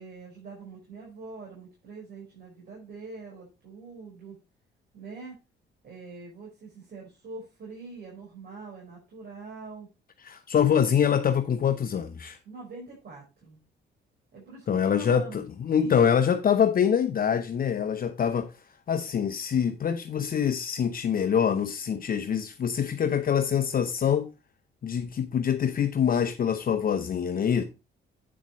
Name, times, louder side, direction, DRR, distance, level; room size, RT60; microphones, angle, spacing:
voice 1, 0.0-4.4 4.9-5.4 5.8-9.9 12.4-13.6 14.3-15.4 15.8-16.1, right 3 dB, 55° right, 4.9 m, -44 dB
voice 2, 10.2-12.4 14.7-18.5 18.9-24.3 24.8-27.6, left 8 dB, 45° left, 0.8 m, -25 dB
8.7 x 7.2 x 3.1 m
cardioid pair, 90°, 20 cm